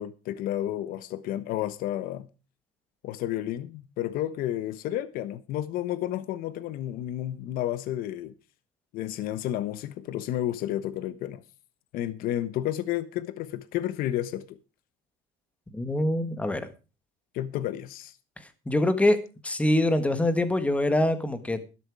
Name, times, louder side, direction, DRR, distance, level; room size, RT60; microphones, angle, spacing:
voice 1, 0.0-2.3 3.0-8.3 8.9-11.4 11.9-14.6 17.3-18.1, left 12 dB, 55° left, 1.2 m, -31 dB
voice 2, 15.7-16.7 18.7-19.2 19.4-21.6, left 1 dB, 5° left, 1.5 m, -24 dB
12.5 x 12.0 x 4.8 m
cardioid pair, 150°, 18 cm